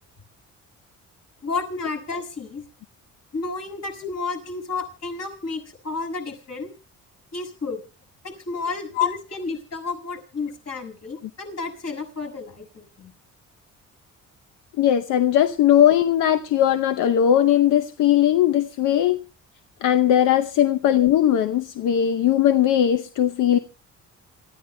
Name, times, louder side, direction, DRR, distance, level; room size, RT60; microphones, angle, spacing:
voice 1, 1.4-2.6 3.3-6.7 7.3-7.8 8.2-13.1 20.6-20.7, left 3 dB, 55° left, 6.7 m, -32 dB
voice 2, 14.8-19.2 19.8-23.6, left 10 dB, 85° left, 0.8 m, -19 dB
27.5 x 14.0 x 2.2 m
cardioid pair, 90°, 30 cm